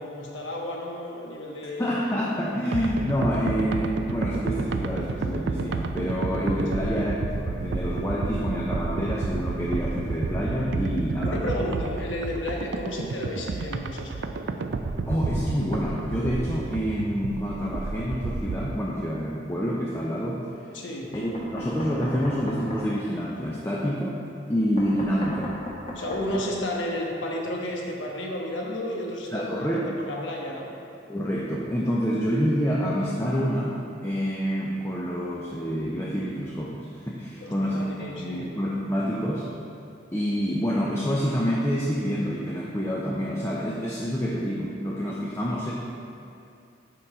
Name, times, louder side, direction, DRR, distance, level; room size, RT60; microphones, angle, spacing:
voice 1, 0.0-2.1 6.7-7.0 11.2-14.3 20.7-21.1 25.9-30.7 37.4-38.4, left 1 dB, 80° left, -1 dB, 1.2 m, -32 dB
voice 2, 1.8-11.4 15.1-20.5 21.1-24.2 24.5-25.5 29.3-29.9 31.1-39.5 40.1-45.7, equal, 15° left, -5 dB, 0.5 m, -27 dB
sound 1, 2.7-18.7, right 3 dB, 65° right, 0.4 m, -30 dB
Knock, 21.1-22.9 24.8-26.5, left 1 dB, 35° left, 1.2 m, -36 dB
6.8 x 5.6 x 5.0 m, 2.5 s
head